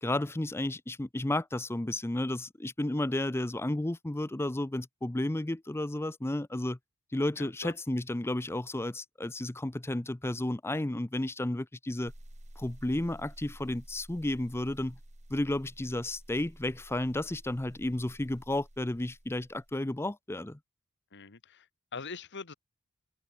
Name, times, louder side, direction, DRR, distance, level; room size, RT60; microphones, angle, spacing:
voice 1, 0.0-6.8 7.1-12.1 12.6-15.0 15.3-20.6, left 1 dB, 10° left, 0.6 m, -32 dB
voice 2, 7.4-7.7 21.1-21.7 21.9-22.5, left 4 dB, 55° left, 1.8 m, -43 dB
sound 1, 12.1-19.9, right 1 dB, 35° right, 2.6 m, -52 dB
open air
head